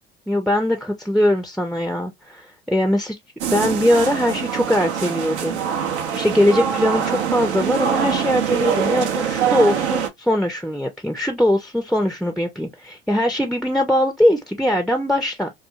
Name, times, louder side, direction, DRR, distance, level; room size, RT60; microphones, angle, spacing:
voice 1, 0.3-3.1 3.5-5.6 6.1-15.5, left 1 dB, ahead, 0.4 m, -21 dB
sound 1, 3.4-10.1, right 8 dB, 85° right, 0.6 m, -23 dB
2.3 x 2.3 x 2.7 m
hypercardioid pair, 70°, 33 cm